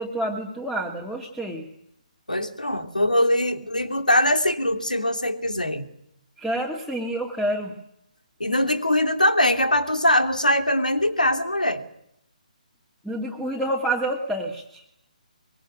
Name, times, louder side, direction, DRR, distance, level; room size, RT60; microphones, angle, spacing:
voice 1, 0.0-1.7 6.4-7.7 13.0-14.8, right 1 dB, 5° left, 2 dB, 2.4 m, -28 dB
voice 2, 2.3-5.9 8.4-11.8, left 1 dB, 80° left, 7 dB, 2.9 m, -22 dB
24.5 x 23.0 x 9.4 m, 0.74 s
figure-of-eight pair, 140°, 4 cm